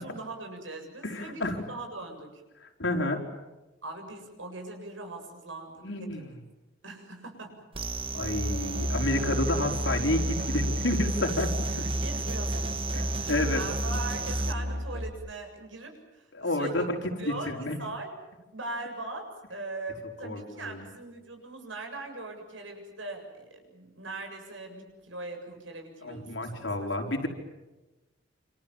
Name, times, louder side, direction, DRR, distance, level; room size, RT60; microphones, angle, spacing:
voice 1, 0.0-2.4 3.8-6.3 6.8-7.8 12.0-16.9 17.2-18.2 18.5-26.9, right 2 dB, 85° right, 4 dB, 7.4 m, -41 dB
voice 2, 1.0-1.6 2.6-3.2 5.8-6.4 8.1-11.9 12.9-13.0 13.3-13.6 16.3-17.0 17.2-17.8 20.2-20.8 26.0-27.3, left 1 dB, 75° left, 2 dB, 4.8 m, -30 dB
sound 1, 7.7-14.5, right 3 dB, 30° right, 1.5 m, -34 dB
Musical instrument, 8.2-15.1, equal, 55° right, 3.4 m, -32 dB
28.5 x 27.0 x 7.4 m, 1.1 s
head